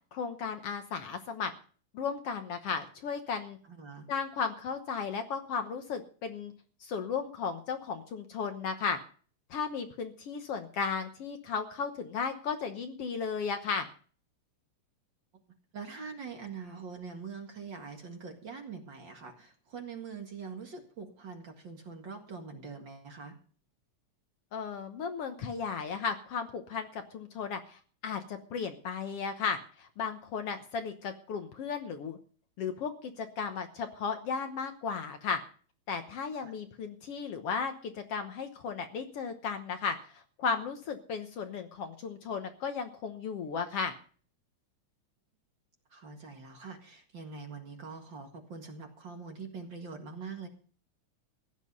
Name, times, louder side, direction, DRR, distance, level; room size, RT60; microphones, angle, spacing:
voice 1, 0.1-1.5 1.9-3.6 4.1-6.5 6.8-9.0 9.5-13.9 24.5-32.2 32.6-35.4 35.9-43.9, left 5 dB, 60° left, 7 dB, 1.9 m, -35 dB
voice 2, 3.7-4.1 15.7-23.4 36.4-36.5 45.9-50.5, right 5 dB, 45° right, 4 dB, 2.2 m, -44 dB
16.0 x 10.5 x 5.5 m, 0.43 s
omnidirectional pair, 3.3 m